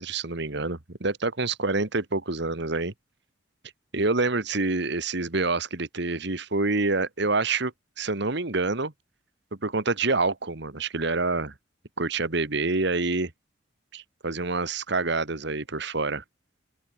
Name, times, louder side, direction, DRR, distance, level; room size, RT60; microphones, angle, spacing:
voice 1, 0.0-2.9 3.9-8.9 9.6-11.5 12.0-13.3 13.9-16.2, right 3 dB, 60° right, 1.8 m, -27 dB
open air
head